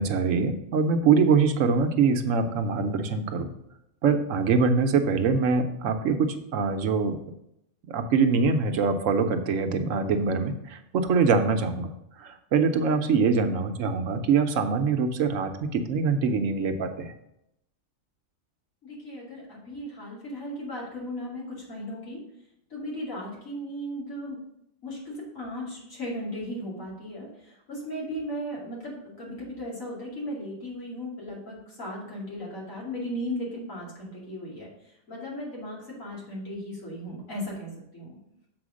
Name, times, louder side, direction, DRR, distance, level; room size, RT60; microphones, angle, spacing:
voice 1, 0.0-3.5 4.0-7.2 7.9-11.9 12.2-17.1, right 5 dB, 75° right, 7 dB, 1.1 m, -24 dB
voice 2, 18.8-22.2 22.7-24.4 24.8-34.7 35.1-38.2, equal, 75° left, -5 dB, 3.1 m, -36 dB
7.0 x 4.5 x 6.2 m, 0.80 s
omnidirectional pair, 1.4 m